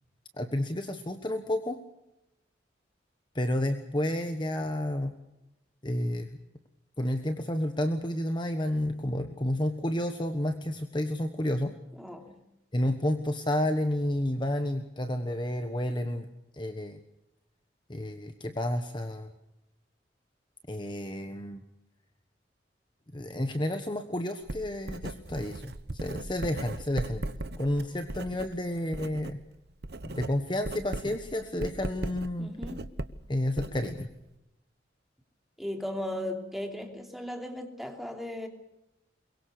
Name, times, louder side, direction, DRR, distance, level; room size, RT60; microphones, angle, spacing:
voice 1, 0.3-1.8 3.3-5.1 5.8-6.3 7.0-11.7 12.7-16.3 16.5-17.0 17.9-19.3 20.7-21.6 23.1-27.3 27.6-29.4 30.0-32.5 33.3-34.1, left 1 dB, 25° left, 7 dB, 1.2 m, -30 dB
voice 2, 12.0-12.3 32.4-32.8 35.6-38.5, left 1 dB, ahead, 3 dB, 3.1 m, -36 dB
Writing, 24.4-29.4 29.7-34.3, right 2 dB, 60° right, 1.0 m, -38 dB
23.0 x 22.5 x 6.7 m, 0.92 s
head